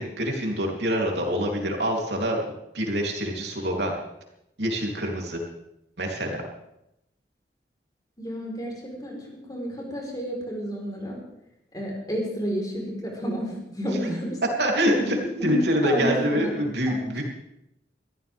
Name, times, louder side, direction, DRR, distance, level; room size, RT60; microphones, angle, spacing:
voice 1, 0.0-3.9 4.6-5.4 6.0-6.4 14.6-15.2 15.4-17.2, equal, 75° right, 0 dB, 3.5 m, -25 dB
voice 2, 8.2-8.7 9.0-9.2 9.5-11.2 11.7-14.3 14.9-15.1 15.4-16.5 16.9-17.0, equal, 20° left, -1 dB, 4.5 m, -30 dB
23.0 x 14.5 x 3.7 m, 0.83 s
head